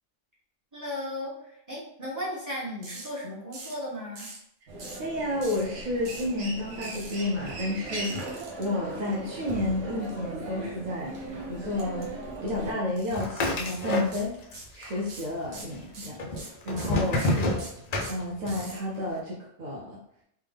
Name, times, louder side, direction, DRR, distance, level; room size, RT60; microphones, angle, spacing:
voice 1, 0.7-4.3 17.0-17.5, left 1 dB, 15° right, -7 dB, 1.1 m, -36 dB
sound 1, 2.8-3.1 3.5-3.8 4.2-4.4 4.8-5.1 5.4-5.6 6.0-6.3 6.8-7.1 8.0-8.6 11.8-12.0 12.4-12.5 13.0-13.3 13.6-13.8 14.1-14.8 15.1-18.8, right 3 dB, 60° right, 1.1 m, -43 dB
Human voice, 4.7-12.7, right 1 dB, 90° right, 1.2 m, -38 dB
voice 2, 5.0-12.1 12.4-14.4 14.7-16.3 16.6-17.6 18.1-20.0, left 1 dB, 45° right, -5 dB, 0.6 m, -31 dB
sound 2, 13.1-14.6 14.8-15.6 16.2-18.7, left 1 dB, 60° left, 0.4 m, -29 dB
3.4 x 2.1 x 3.3 m, 0.73 s
omnidirectional pair, 1.2 m